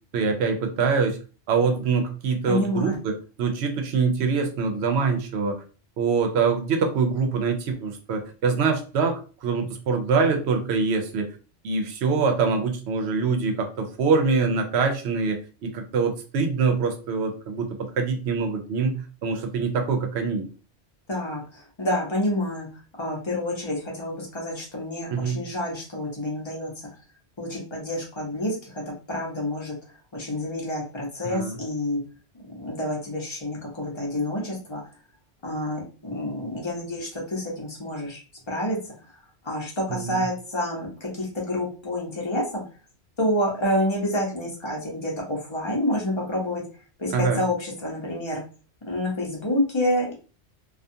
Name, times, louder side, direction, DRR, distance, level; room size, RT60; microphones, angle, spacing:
voice 1, 0.1-1.2 1.5-3.1 3.4-5.6 6.0-11.3 11.6-20.5 25.1-25.4 31.2-31.6 39.9-40.3 47.1-47.4, right 5 dB, 75° right, 5 dB, 0.8 m, -24 dB
voice 2, 2.5-3.0 21.1-22.7 23.0-26.7 27.4-28.8 29.1-29.7 30.1-32.0 32.3-34.8 35.4-38.8 39.4-42.6 43.2-46.6 47.0-48.4 48.9-50.1, left 1 dB, 30° left, -2 dB, 0.8 m, -28 dB
2.4 x 2.3 x 2.6 m, 0.36 s
omnidirectional pair, 1.1 m